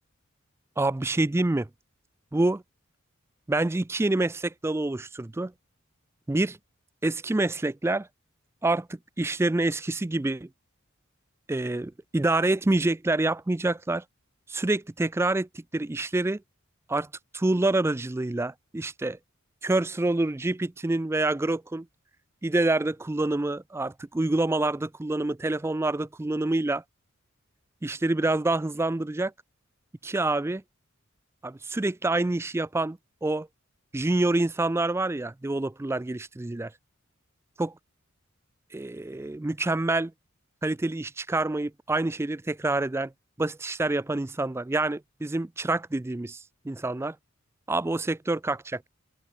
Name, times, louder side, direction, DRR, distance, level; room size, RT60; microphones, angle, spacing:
voice 1, 0.8-1.7 2.3-2.6 3.5-5.5 6.3-6.6 7.0-8.1 8.6-10.5 11.5-14.0 14.5-16.4 16.9-17.1 17.3-19.2 19.6-21.9 22.4-26.8 27.8-29.3 30.0-30.6 31.4-33.5 33.9-36.7 37.6-37.7 38.7-40.1 40.6-43.1 43.4-47.2 47.7-48.9, right 2 dB, 10° right, 0.4 m, -27 dB
open air
head